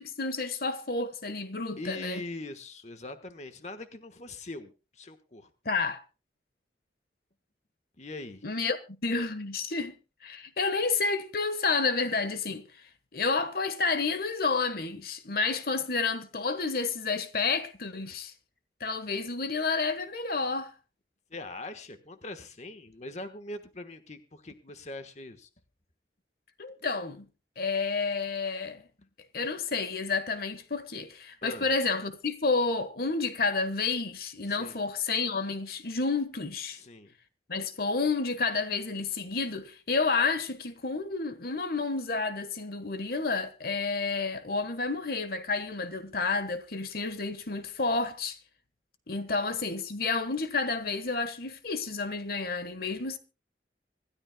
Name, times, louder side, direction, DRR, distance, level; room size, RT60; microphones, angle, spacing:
voice 1, 0.0-2.2 5.6-6.0 8.4-8.8 9.0-9.9 10.2-12.6 13.1-18.3 18.8-20.7 26.6-27.3 27.6-28.8 29.3-36.8 37.5-48.4 49.1-53.2, left 4 dB, 60° left, 1.3 m, -30 dB
voice 2, 1.8-5.5 8.0-8.4 21.3-25.5 29.0-29.1 31.4-31.7 34.4-34.8 36.7-37.2, left 2 dB, 40° left, 1.2 m, -42 dB
25.5 x 13.0 x 2.2 m
head